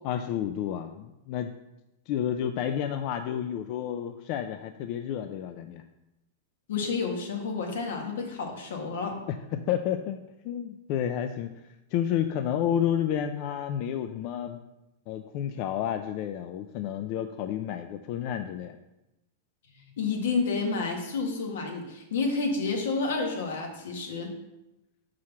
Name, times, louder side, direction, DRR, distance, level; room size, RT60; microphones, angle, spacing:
voice 1, 0.0-1.5 2.1-5.8 9.3-10.2 10.4-11.5 11.9-14.6 15.1-18.8, left 10 dB, 40° left, 8 dB, 0.4 m, -30 dB
voice 2, 6.7-9.2 20.0-24.3, left 4 dB, 80° left, 2 dB, 1.7 m, -30 dB
5.7 x 4.8 x 5.8 m, 0.94 s
supercardioid pair, 155°, 0 cm